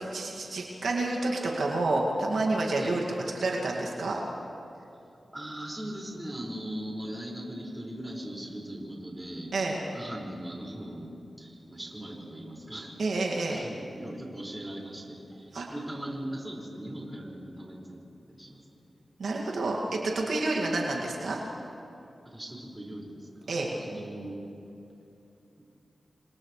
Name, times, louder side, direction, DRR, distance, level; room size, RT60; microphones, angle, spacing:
voice 1, 0.0-3.0 3.3-4.2 9.5-9.8 13.0-13.6 15.5-15.7 19.2-21.4 23.5-23.7, right 2 dB, 85° right, -2 dB, 2.3 m, -29 dB
voice 2, 5.3-9.5 9.9-12.9 13.5-18.0 18.3-18.8 22.2-24.4, right 1 dB, 15° right, -3 dB, 5.8 m, -39 dB
30.0 x 26.0 x 3.4 m, 2.7 s
cardioid pair, 65°, 0 cm